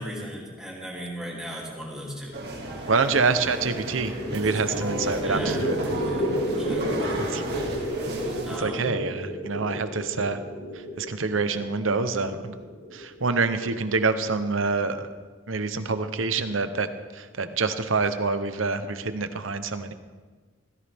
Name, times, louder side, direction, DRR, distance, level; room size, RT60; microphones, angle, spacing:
voice 1, 0.0-2.4 2.7-2.8 4.4-4.8 5.2-7.5 8.4-9.0, equal, 5° right, -4 dB, 2.9 m, -37 dB
sound 1, 2.3-8.6, right 1 dB, 55° right, 2.3 m, -33 dB
voice 2, 2.9-5.8 7.0-7.7 8.6-10.4 10.7-12.6 12.9-15.1 15.5-16.9 17.1-19.9, right 4 dB, 85° right, 10 dB, 0.9 m, -26 dB
sound 2, 3.6-15.1, equal, 60° left, 1.2 m, -33 dB
16.5 x 15.0 x 3.6 m, 1.4 s
head